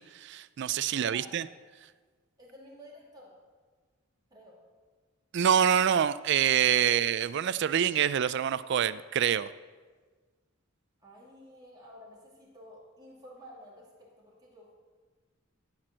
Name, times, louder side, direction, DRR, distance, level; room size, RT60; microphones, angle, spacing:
voice 1, 0.0-1.5 5.3-9.5, right 9 dB, 55° right, 15 dB, 0.3 m, -26 dB
voice 2, 0.9-1.5 2.4-3.3 4.3-4.6 6.7-7.0 11.0-14.7, equal, 20° right, -5 dB, 2.7 m, -52 dB
13.5 x 4.5 x 7.6 m, 1.5 s
head